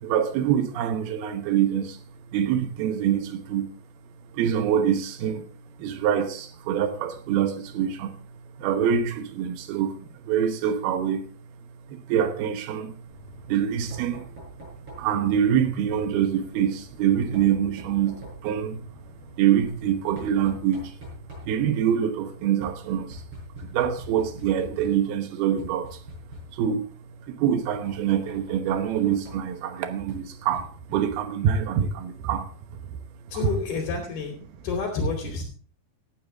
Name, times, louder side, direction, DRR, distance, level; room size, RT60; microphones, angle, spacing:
voice 1, 0.0-2.0 2.3-3.7 4.3-5.5 5.8-8.1 8.6-11.2 11.9-13.0 13.5-14.3 15.0-18.8 19.3-21.0 21.4-23.2 23.6-26.0 26.5-26.9 27.2-33.0, right 9 dB, 80° right, 3.0 m, -25 dB
Knock, 13.1-31.5, left 1 dB, 35° right, 7.3 m, -45 dB
voice 2, 33.3-34.3 34.6-35.4, left 5 dB, 75° left, 5.2 m, -29 dB
17.0 x 10.5 x 3.5 m
omnidirectional pair, 4.5 m